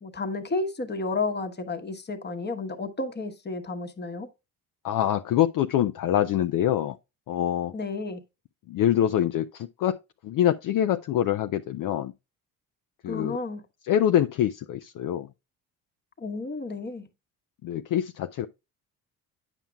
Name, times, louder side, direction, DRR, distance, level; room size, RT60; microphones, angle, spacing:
voice 1, 0.0-4.3 7.7-8.2 13.1-13.6 16.2-17.1, left 3 dB, 25° left, 1.1 m, -32 dB
voice 2, 4.8-7.0 7.3-7.7 8.7-10.0 10.2-12.1 13.0-13.4 13.9-15.3 17.6-18.5, left 11 dB, 55° left, 0.5 m, -25 dB
9.1 x 5.8 x 2.2 m
supercardioid pair, 75°, 40 cm